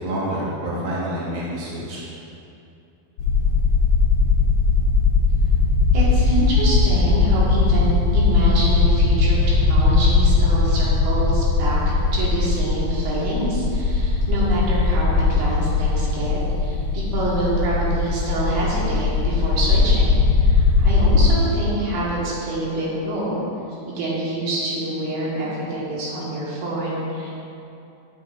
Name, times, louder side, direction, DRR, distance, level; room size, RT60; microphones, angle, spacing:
voice 1, 0.0-2.0, right 1 dB, 65° right, -7 dB, 0.9 m, -27 dB
sound 1, 3.2-21.3, left 4 dB, 75° left, 2.5 m, -18 dB
voice 2, 5.9-23.4 23.9-27.4, right 1 dB, 90° right, -7 dB, 3.7 m, -26 dB
10.5 x 7.6 x 2.6 m, 2.7 s
omnidirectional pair, 4.4 m